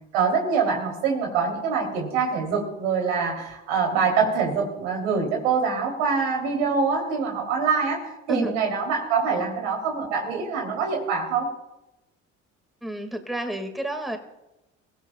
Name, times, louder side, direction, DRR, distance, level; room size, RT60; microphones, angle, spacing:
voice 1, 0.1-11.5, right 5 dB, 80° right, 1 dB, 3.4 m, -24 dB
voice 2, 8.3-8.6 9.3-9.5 12.8-14.2, right 1 dB, ahead, 5 dB, 2.1 m, -30 dB
24.5 x 16.0 x 2.4 m, 0.94 s
hypercardioid pair, 55°, 37 cm